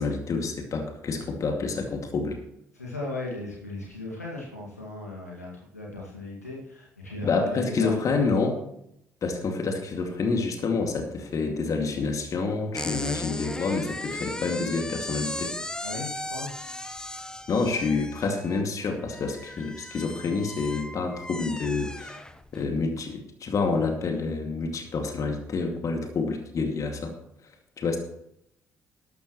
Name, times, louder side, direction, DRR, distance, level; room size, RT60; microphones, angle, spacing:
voice 1, 0.0-2.4 7.2-8.6 9.2-15.5 17.5-22.2 22.5-27.1 27.8-28.0, left 4 dB, 45° left, 4 dB, 2.4 m, -28 dB
voice 2, 2.7-8.1 15.8-16.5, left 2 dB, 90° left, -3 dB, 2.2 m, -37 dB
sound 1, 12.7-22.7, left 1 dB, 10° left, 1.0 m, -37 dB
14.0 x 12.0 x 3.2 m, 0.76 s
figure-of-eight pair, 50°, 8 cm